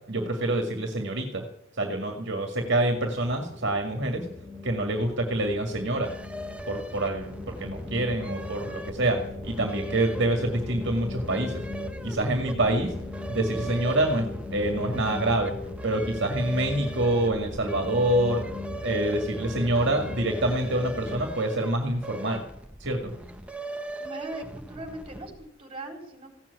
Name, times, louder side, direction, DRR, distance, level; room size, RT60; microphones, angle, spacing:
voice 1, 0.1-1.4 1.8-4.2 4.6-6.1 6.7-11.6 12.0-12.9 13.3-15.5 15.8-18.5 18.8-22.4 22.8-23.1, right 1 dB, 60° right, 3 dB, 2.1 m, -26 dB
sound 1, 2.5-21.3, left 2 dB, 10° left, 3.1 m, -38 dB
sound 2, 6.0-25.5, right 2 dB, 5° right, 0.9 m, -40 dB
voice 2, 24.0-26.3, right 1 dB, 30° right, 3 dB, 4.2 m, -40 dB
16.0 x 7.6 x 9.6 m, 0.75 s
head